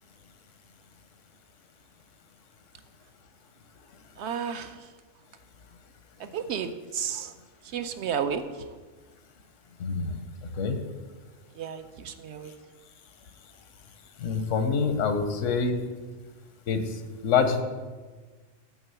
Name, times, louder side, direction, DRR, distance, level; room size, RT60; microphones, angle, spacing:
voice 1, 4.2-4.7 6.2-7.3 7.7-8.4 11.6-12.5, right 7 dB, 70° right, 9 dB, 0.8 m, -32 dB
voice 2, 9.8-10.2 10.6-10.8 14.2-15.8 16.7-17.6, left 5 dB, 90° left, 8 dB, 1.1 m, -26 dB
9.0 x 3.8 x 6.8 m, 1.4 s
omnidirectional pair, 1.3 m